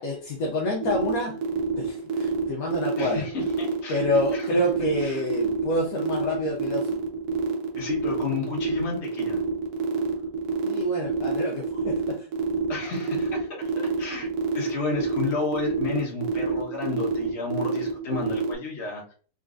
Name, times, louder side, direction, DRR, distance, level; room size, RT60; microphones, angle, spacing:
voice 1, 0.0-1.4 1.8-3.3 3.9-7.0 10.6-12.3, left 1 dB, 65° left, -1 dB, 1.0 m, -27 dB
sound 1, 0.8-18.5, right 7 dB, 65° right, 1.2 m, -28 dB
voice 2, 3.0-4.1 4.3-4.6 5.0-5.2 7.7-9.4 12.7-19.1, left 4 dB, 45° left, -3 dB, 1.3 m, -32 dB
3.9 x 2.9 x 2.5 m, 0.42 s
omnidirectional pair, 1.9 m